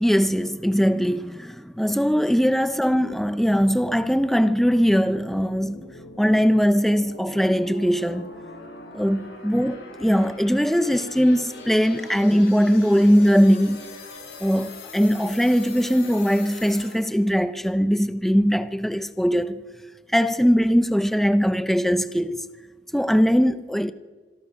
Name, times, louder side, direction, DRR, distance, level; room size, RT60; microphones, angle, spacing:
voice 1, 0.0-5.8 6.2-8.3 8.9-13.8 14.4-19.6 20.1-22.4 22.9-23.9, equal, ahead, 0.7 m, -20 dB
sound 1, 3.2-17.2, left 2 dB, 75° left, 8.0 m, -42 dB
26.0 x 22.5 x 6.5 m
head